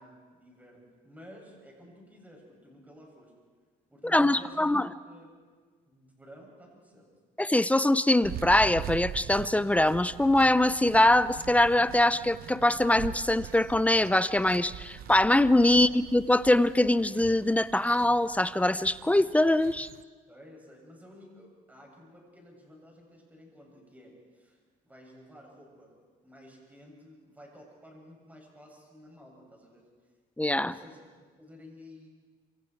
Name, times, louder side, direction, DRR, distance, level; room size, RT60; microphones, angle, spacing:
voice 1, 0.0-3.3 3.9-5.3 5.9-7.1 15.7-15.9 20.3-24.6 24.8-26.0 26.2-29.9 30.6-32.1, equal, 10° right, -1 dB, 7.6 m, -52 dB
voice 2, 4.1-4.8 7.4-19.9 30.4-30.7, left 1 dB, 10° left, 15 dB, 0.6 m, -23 dB
sound 1, 8.2-20.0, right 11 dB, 60° right, 0.7 m, -43 dB
27.0 x 26.5 x 4.7 m, 1.5 s
cardioid pair, 110°, 17 cm